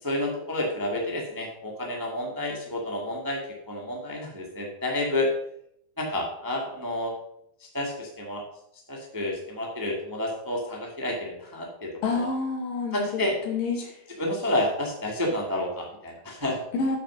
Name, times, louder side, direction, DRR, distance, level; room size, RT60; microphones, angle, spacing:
voice 1, 0.0-3.4 3.7-5.3 6.0-7.1 7.6-8.4 8.9-12.3 12.9-13.4 13.7-13.8 14.2-16.6, left 1 dB, 10° right, 0 dB, 0.9 m, -30 dB
voice 2, 12.0-14.0 16.7-17.0, left 4 dB, 90° left, 1 dB, 3.6 m, -28 dB
8.5 x 6.6 x 6.0 m, 0.75 s
omnidirectional pair, 3.8 m